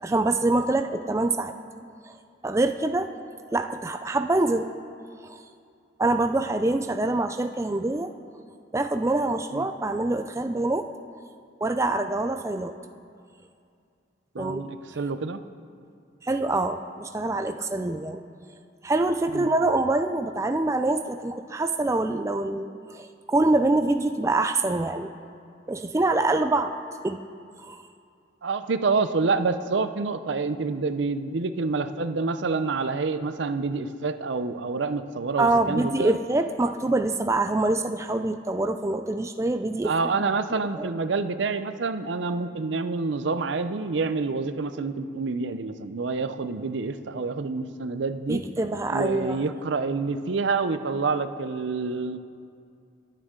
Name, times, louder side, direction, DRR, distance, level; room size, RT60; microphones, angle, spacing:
voice 1, 0.0-1.5 2.4-3.1 3.5-4.7 5.2-5.4 6.0-8.1 8.7-10.9 11.6-12.7 14.4-14.6 16.2-18.2 18.8-22.7 22.9-25.1 25.7-26.7 27.0-27.2 27.6-27.8 35.4-39.9 40.8-40.9 48.3-49.4, right 2 dB, 15° right, 7 dB, 0.3 m, -25 dB
voice 2, 14.3-15.4 19.3-19.5 28.4-36.2 39.8-48.4 48.9-52.2, right 4 dB, 75° right, 11 dB, 0.6 m, -27 dB
22.5 x 9.0 x 3.7 m, 2.3 s
head